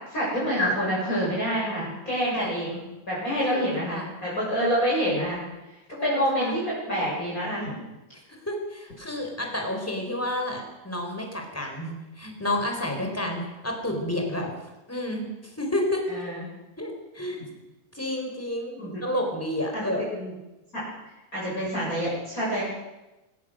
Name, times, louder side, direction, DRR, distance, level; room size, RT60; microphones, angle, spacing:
voice 1, 0.1-5.4 6.0-7.8 16.1-16.4 18.8-19.0 19.7-20.3 20.7-20.8 21.3-22.6, equal, 20° left, -6 dB, 8.1 m, -27 dB
voice 2, 3.4-4.1 6.0-6.5 8.4-14.5 14.9-16.3 16.8-17.4 17.9-20.0, left 1 dB, 5° left, 2 dB, 4.1 m, -30 dB
24.5 x 17.5 x 6.5 m, 1.0 s
omnidirectional pair, 4.6 m